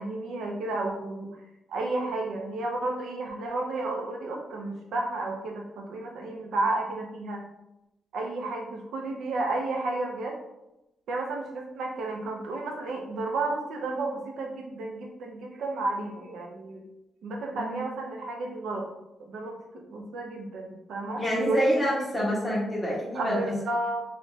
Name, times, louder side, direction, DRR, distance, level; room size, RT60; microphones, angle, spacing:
voice 1, 0.0-1.4 1.7-7.4 8.1-10.4 11.1-16.8 17.2-18.9 19.2-22.1 23.1-24.0, right 2 dB, 75° right, 1 dB, 0.5 m, -32 dB
voice 2, 21.2-23.5, equal, 10° left, -5 dB, 0.9 m, -27 dB
3.8 x 2.2 x 2.3 m, 0.91 s
wide cardioid pair, 160°, 0 cm